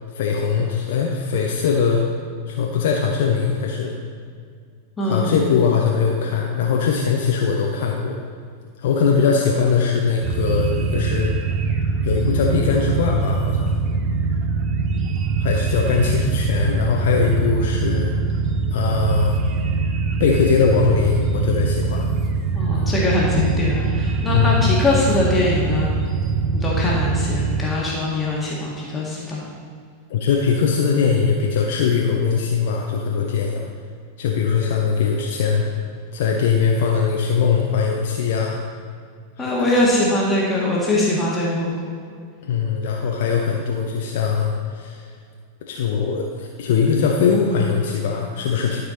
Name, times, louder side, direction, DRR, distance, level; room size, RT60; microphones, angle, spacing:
voice 1, 0.1-2.1 2.5-3.9 5.0-8.2 8.8-11.3 12.0-13.7 15.4-18.1 18.7-19.4 20.2-22.1 24.2-24.7 30.1-33.6 34.2-35.8 36.1-38.6 39.4-39.7 42.4-45.1 45.7-48.8, left 6 dB, 55° left, 0 dB, 0.7 m, -21 dB
voice 2, 5.0-5.4 14.9-15.1 22.5-26.3 26.5-29.4 39.4-41.8, left 2 dB, 15° left, -5 dB, 1.6 m, -22 dB
sound 1, 10.2-27.6, right 4 dB, 35° right, 0.8 m, -23 dB
12.0 x 4.8 x 4.0 m, 2.2 s
figure-of-eight pair, 90°, 0 cm